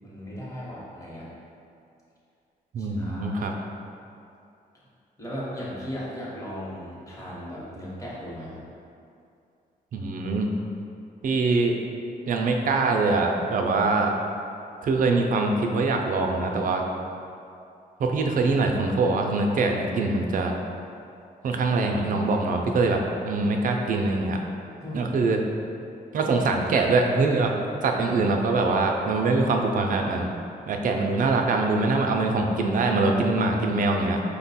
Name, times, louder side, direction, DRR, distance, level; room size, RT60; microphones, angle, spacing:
voice 1, 0.0-1.3 2.8-3.6 5.2-8.6 24.8-25.3, equal, 20° left, -7 dB, 1.0 m, -37 dB
voice 2, 2.7-3.5 9.9-10.5 11.2-11.7 12.3-14.1 14.8-16.8 18.0-20.5 21.4-24.4 24.9-25.4 26.1-27.5 27.8-30.3 30.7-34.2, right 3 dB, 60° right, 2 dB, 0.5 m, -23 dB
5.2 x 2.2 x 4.1 m, 2.5 s
cardioid pair, 125°, 16 cm